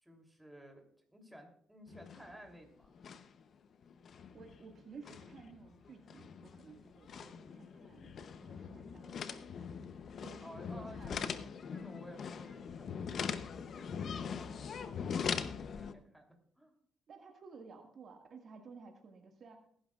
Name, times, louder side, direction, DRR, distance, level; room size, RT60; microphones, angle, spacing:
voice 1, 0.0-0.8 1.1-2.9 10.4-11.3 11.7-16.3 16.6-16.8, equal, 5° right, 2 dB, 3.1 m, -55 dB
sound 1, 1.9-2.6 2.8-3.4 3.8-15.9, left 6 dB, 55° left, 0.8 m, -42 dB
voice 2, 4.3-9.7 10.2-11.6 11.9-12.1 17.1-19.6, right 5 dB, 55° right, 3 dB, 1.8 m, -55 dB
21.0 x 11.0 x 2.4 m, 0.65 s
cardioid pair, 90°, 0 cm